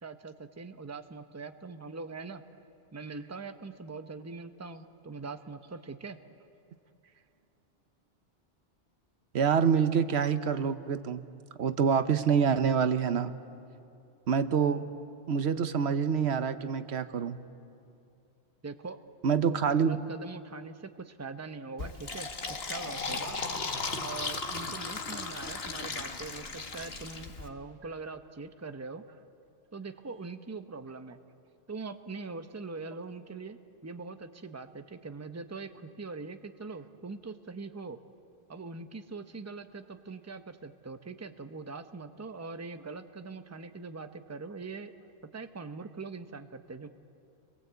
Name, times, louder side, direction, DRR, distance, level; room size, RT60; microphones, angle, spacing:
voice 1, 0.0-2.4 2.9-6.2 18.6-19.0 19.7-22.3 22.7-23.4 24.0-29.0 29.7-31.2 31.7-38.0 38.5-44.9 45.3-46.9, right 4 dB, 15° right, 8 dB, 0.8 m, -42 dB
voice 2, 9.3-11.2 11.6-13.3 14.3-14.8 15.3-17.4 19.2-20.0, right 7 dB, 80° right, 11 dB, 1.1 m, -26 dB
Fill (with liquid), 21.8-27.5, left 3 dB, 70° left, 1.6 m, -36 dB
30.0 x 21.5 x 8.1 m, 2.6 s
omnidirectional pair, 1.1 m